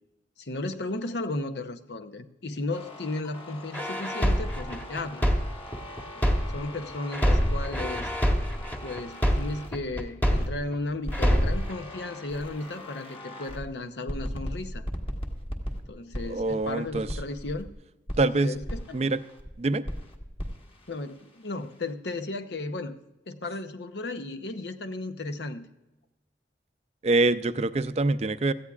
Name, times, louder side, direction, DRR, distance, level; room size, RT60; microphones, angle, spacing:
voice 1, 0.4-5.3 6.2-8.1 8.8-14.9 15.9-17.7 18.1-19.0 20.9-22.9 23.3-25.7, left 2 dB, 80° left, 9 dB, 0.8 m, -35 dB
sound 1, 2.7-10.6 11.0-13.7 14.1-17.7 18.1-19.5 19.8-21.9, equal, 30° left, 1.3 m, -39 dB
sound 2, 3.7-6.7 7.1-10.7 11.1-11.7, equal, 10° left, 1.1 m, -25 dB
voice 2, 16.3-17.1 18.2-18.6 18.9-19.2 19.6-19.8 27.0-28.5, right 2 dB, 35° right, 12 dB, 0.4 m, -25 dB
17.5 x 14.0 x 2.4 m, 0.97 s
head